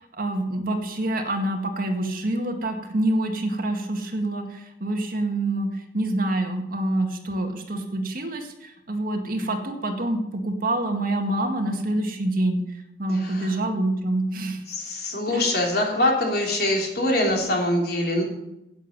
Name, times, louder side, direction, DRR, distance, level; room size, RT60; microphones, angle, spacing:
voice 1, 0.2-14.6 15.3-15.5, right 1 dB, 55° right, 4 dB, 1.9 m, -26 dB
voice 2, 13.2-13.5 14.7-18.2, left 1 dB, 60° left, 0 dB, 3.4 m, -23 dB
11.0 x 9.1 x 7.4 m, 0.87 s
head